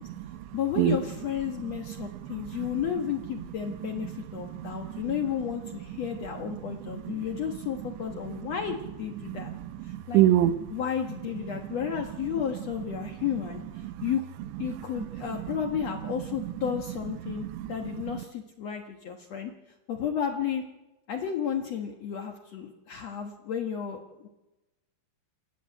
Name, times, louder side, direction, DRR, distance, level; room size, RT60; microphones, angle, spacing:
voice 1, 0.0-0.4 0.8-1.0 2.0-2.8 4.0-5.2 6.7-7.2 8.4-8.5 9.2-10.7 11.5-11.6 13.8-14.1 14.6-15.6 16.4-16.5 17.2-17.7 18.1-18.2, right 13 dB, 85° right, 13 dB, 3.1 m, -29 dB
voice 2, 0.5-9.5 9.8-10.2 10.7-13.6 14.0-14.2 14.6-19.5 19.9-20.6 21.1-24.3, left 8 dB, 75° left, 4 dB, 1.5 m, -32 dB
28.0 x 13.0 x 7.8 m, 1.0 s
omnidirectional pair, 5.0 m